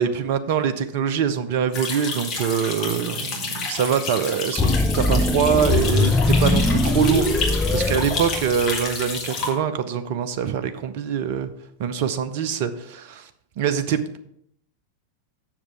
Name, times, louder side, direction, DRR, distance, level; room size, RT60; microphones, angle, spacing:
voice 1, 0.0-7.3 7.7-11.5 11.8-13.2 13.6-14.2, right 8 dB, 50° right, 11 dB, 0.6 m, -24 dB
sound 1, 1.7-9.5, left 4 dB, 35° left, 1.9 m, -30 dB
sound 2, 4.6-8.8, left 2 dB, 10° left, 0.5 m, -21 dB
7.4 x 6.3 x 4.8 m, 0.73 s
figure-of-eight pair, 90°, 0 cm